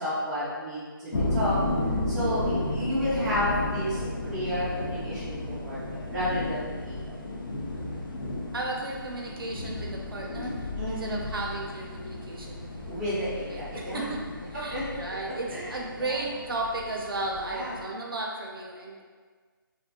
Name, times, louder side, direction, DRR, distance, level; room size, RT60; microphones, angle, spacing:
voice 1, 0.0-1.6 2.1-7.2 10.8-11.3 12.9-14.1 14.5-14.8 15.5-15.7 16.0-16.2 17.5-17.8, equal, 5° right, -16 dB, 0.4 m, -31 dB
sound 1, 1.1-17.8, left 2 dB, 65° left, 0.5 m, -33 dB
voice 2, 8.5-12.9 13.5-19.0, right 2 dB, 75° right, -1 dB, 0.5 m, -35 dB
2.6 x 2.3 x 2.2 m, 1.5 s
figure-of-eight pair, 160°, 12 cm